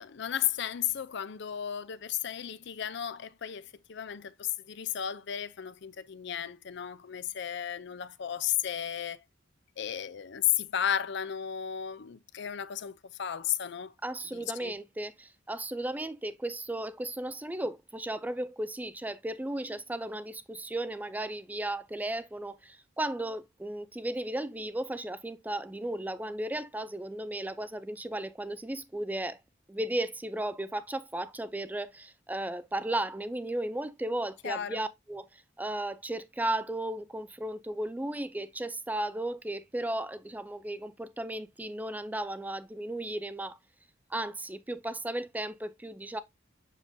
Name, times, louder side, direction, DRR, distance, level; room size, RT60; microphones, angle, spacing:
voice 1, 0.0-9.2 9.8-13.9 14.3-14.7 34.4-34.8, left 10 dB, 60° left, 0.5 m, -34 dB
voice 2, 14.0-29.4 29.7-43.6 44.1-46.2, right 1 dB, 10° right, 0.4 m, -35 dB
7.4 x 5.3 x 2.6 m
head